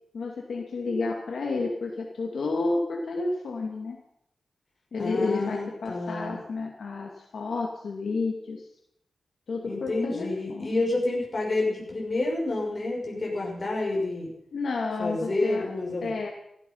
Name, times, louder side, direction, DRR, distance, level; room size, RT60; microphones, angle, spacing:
voice 1, 0.1-4.0 4.9-8.6 9.5-10.8 14.5-15.7 16.0-16.3, left 3 dB, 70° left, 0 dB, 2.3 m, -30 dB
voice 2, 5.0-6.4 9.6-14.3 15.0-16.1, left 2 dB, 40° left, -1 dB, 6.2 m, -29 dB
15.0 x 14.5 x 5.6 m, 0.78 s
wide cardioid pair, 105°, 0 cm